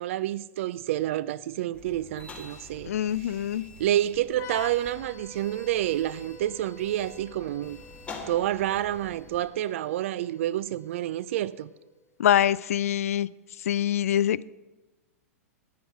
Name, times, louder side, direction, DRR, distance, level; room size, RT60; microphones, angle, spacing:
voice 1, 0.0-3.5 3.8-7.8 8.3-11.7, right 13 dB, 55° right, 0.5 m, -29 dB
sound 1, 1.7-9.4, left 3 dB, 15° left, 1.7 m, -47 dB
voice 2, 2.9-3.6 12.2-13.3 13.7-14.5, left 11 dB, 65° left, 0.4 m, -24 dB
sound 2, 4.3-11.8, left 4 dB, 35° left, 2.7 m, -48 dB
9.9 x 9.6 x 6.0 m
figure-of-eight pair, 105°, 8 cm